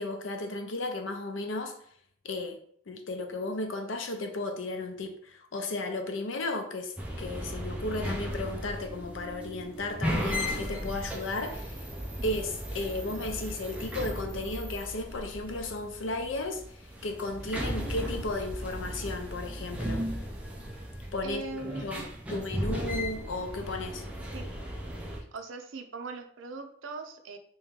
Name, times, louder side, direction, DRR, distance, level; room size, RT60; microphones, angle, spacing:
voice 1, 0.0-1.7 2.2-2.6 2.9-11.9 12.2-20.1 21.1-24.0, left 2 dB, 80° left, 0.6 m, -34 dB
sound 1, 7.0-25.2, equal, 5° right, 0.5 m, -36 dB
voice 2, 21.2-22.1 24.3-24.5 25.3-27.4, right 4 dB, 80° right, 0.5 m, -40 dB
3.1 x 3.0 x 3.6 m
head